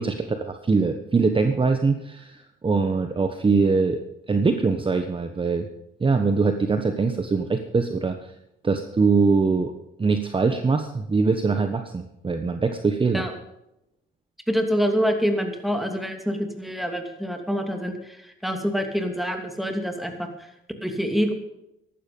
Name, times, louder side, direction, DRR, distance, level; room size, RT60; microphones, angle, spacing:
voice 1, 0.0-5.7 6.0-8.3 8.6-9.7 10.0-13.3, right 4 dB, 25° right, 7 dB, 1.2 m, -23 dB
voice 2, 14.5-20.3 20.8-21.3, equal, ahead, 4 dB, 2.8 m, -26 dB
14.5 x 12.0 x 5.4 m, 0.87 s
cardioid pair, 90°, 21 cm